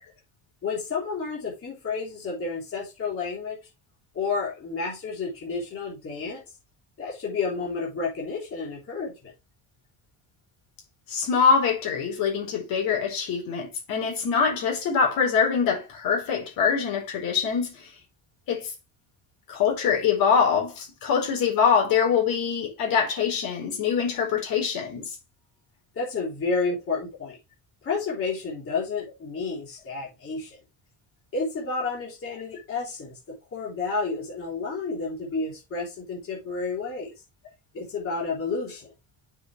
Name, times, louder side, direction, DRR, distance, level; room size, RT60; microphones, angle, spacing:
voice 1, 0.6-3.6 4.1-6.4 7.0-9.3 25.9-27.4 27.8-30.6 31.3-37.1 37.7-38.9, left 4 dB, 40° left, 3.4 m, -30 dB
voice 2, 11.1-17.9 18.5-18.7 19.5-25.1, left 6 dB, 75° left, 4.3 m, -24 dB
7.0 x 6.7 x 3.2 m
cardioid pair, 175°, 34 cm